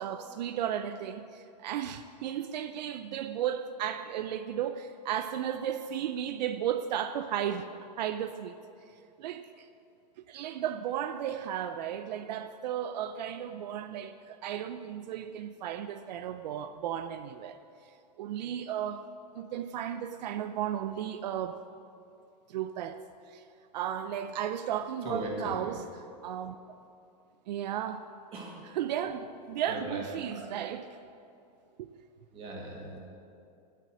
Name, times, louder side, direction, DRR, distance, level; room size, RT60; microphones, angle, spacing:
voice 1, 0.0-7.7 8.0-8.6 9.2-9.7 10.2-19.1 19.3-21.6 22.5-23.0 23.3-23.4 23.7-25.9 26.2-26.8 27.5-28.1 28.6-30.9 31.8-31.9, right 10 dB, 85° right, 0.6 m, -34 dB
voice 2, 25.0-25.5 28.3-28.6 29.0-29.1 29.7-30.4 32.3-33.0, right 2 dB, 25° right, 2.1 m, -38 dB
9.5 x 8.3 x 7.5 m
supercardioid pair, 170°, 21 cm